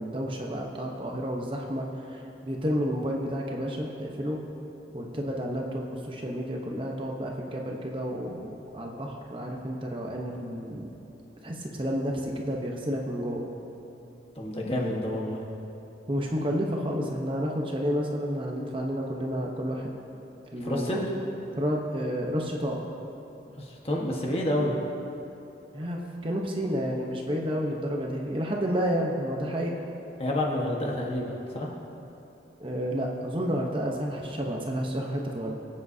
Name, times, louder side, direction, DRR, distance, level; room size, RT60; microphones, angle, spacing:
voice 1, 0.0-4.4 4.9-10.9 11.4-13.5 16.1-19.9 20.5-21.0 21.6-22.8 25.7-29.7 32.6-35.5, equal, 30° right, -1 dB, 1.0 m, -30 dB
voice 2, 14.3-15.4 20.6-21.1 23.6-24.7 30.2-31.7, left 1 dB, 35° left, -2 dB, 1.4 m, -29 dB
22.5 x 8.6 x 2.8 m, 2.9 s
head